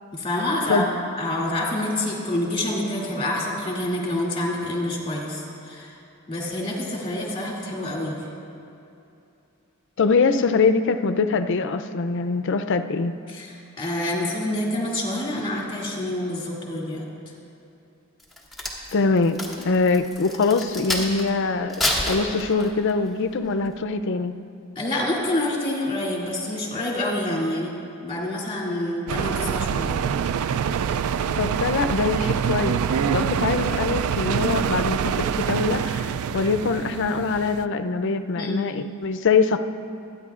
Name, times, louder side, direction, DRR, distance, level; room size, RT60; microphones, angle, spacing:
voice 1, 0.1-0.9 1.2-6.0 6.3-8.2 13.3-17.1 24.8-27.7 28.0-30.0 38.3-38.7, left 1 dB, 25° left, -4 dB, 2.4 m, -27 dB
voice 2, 10.0-13.1 18.9-21.8 22.1-24.3 31.4-32.8 33.1-39.6, left 4 dB, 60° left, 9 dB, 0.5 m, -23 dB
Crack, 18.2-21.3 21.7-22.9 23.4-23.7, left 1 dB, ahead, 1.7 m, -28 dB
sound 1, 29.1-37.7, right 7 dB, 80° right, 0.3 m, -25 dB
26.0 x 9.8 x 2.4 m, 2.7 s
head